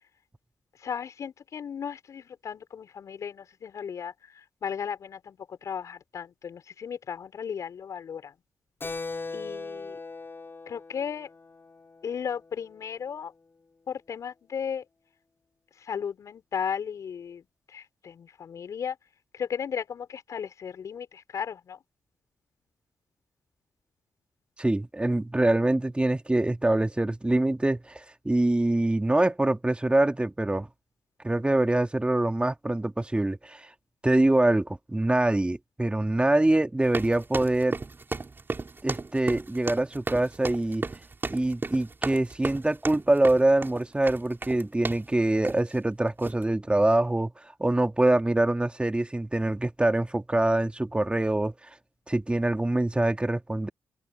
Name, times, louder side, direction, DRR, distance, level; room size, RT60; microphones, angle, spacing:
voice 1, 0.8-8.3 9.3-10.0 10.7-11.3 12.0-13.3 13.9-14.8 15.8-17.4 17.7-19.0 19.3-21.8, left 7 dB, 65° left, 4.9 m, -35 dB
Keyboard (musical), 8.8-12.9, left 3 dB, 40° left, 5.5 m, -40 dB
voice 2, 24.6-30.7 31.2-33.7 34.0-37.8 38.8-40.8 41.3-47.3 47.6-51.5 52.1-53.7, right 2 dB, 20° right, 2.6 m, -24 dB
sound 1, 36.8-45.1 45.4-45.8 46.2-46.4, right 3 dB, 35° right, 6.8 m, -34 dB
open air
supercardioid pair, 45°, 6 cm